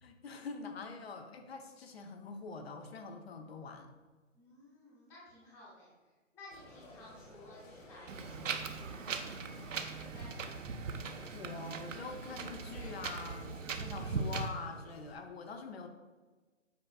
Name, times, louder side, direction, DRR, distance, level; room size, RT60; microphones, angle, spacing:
voice 1, 0.0-3.9 11.3-15.9, left 4 dB, 55° left, 6 dB, 0.8 m, -45 dB
voice 2, 4.4-5.9 6.3-9.1 9.7-10.7, left 1 dB, 5° left, -6 dB, 0.6 m, -56 dB
sound 1, 6.5-15.2, left 1 dB, 90° left, 1.6 m, -55 dB
Wind, 8.1-14.5, right 4 dB, 75° right, 0.7 m, -40 dB
8.3 x 4.8 x 2.3 m, 1.3 s
hypercardioid pair, 140°, 38 cm